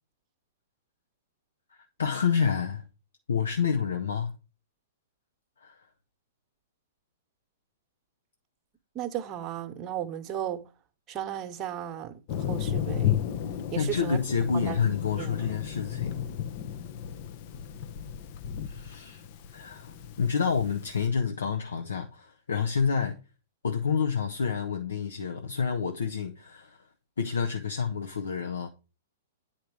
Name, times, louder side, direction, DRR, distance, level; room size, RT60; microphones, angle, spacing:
voice 1, 2.0-2.8 3.3-4.3 5.6-5.8 13.8-16.2 18.6-19.2 19.5-23.2 23.6-26.8 27.2-28.7, left 6 dB, 70° left, 1.0 m, -28 dB
voice 2, 8.9-10.7 11.1-12.1 12.5-13.2 13.7-14.2 14.7-14.8 15.1-15.4, right 10 dB, 25° right, 1.2 m, -35 dB
Thunder, 12.3-21.0, left 10 dB, 45° left, 0.8 m, -33 dB
9.2 x 4.5 x 4.8 m
figure-of-eight pair, 110°, 0 cm